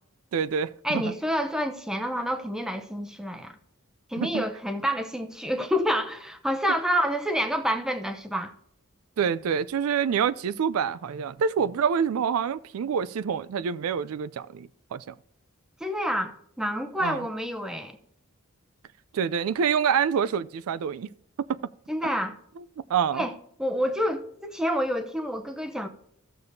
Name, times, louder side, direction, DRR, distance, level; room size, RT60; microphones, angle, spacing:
voice 1, 0.3-1.1 4.2-4.4 6.7-6.8 9.2-15.1 17.0-17.2 19.1-21.1 21.5-21.6 22.6-22.7 22.9-23.3, right 7 dB, 80° right, 0.4 m, -27 dB
voice 2, 0.8-3.6 4.1-8.5 15.8-18.0 21.9-22.4 23.1-23.3 23.6-25.9, equal, 5° right, 0.6 m, -28 dB
14.5 x 6.8 x 2.7 m
head